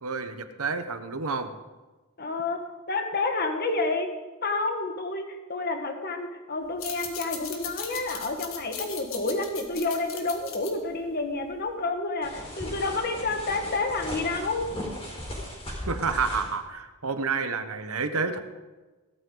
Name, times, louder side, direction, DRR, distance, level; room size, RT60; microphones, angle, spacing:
voice 1, 0.0-1.5 15.9-18.4, right 4 dB, 75° right, 9 dB, 1.1 m, -29 dB
voice 2, 2.2-4.1 4.4-14.7, left 3 dB, 45° left, 5 dB, 1.6 m, -29 dB
sound 1, 6.7-11.8, left 7 dB, 60° left, 1.8 m, -39 dB
sound 2, 12.2-16.5, equal, 25° left, 4.6 m, -37 dB
16.5 x 13.0 x 3.9 m, 1.2 s
head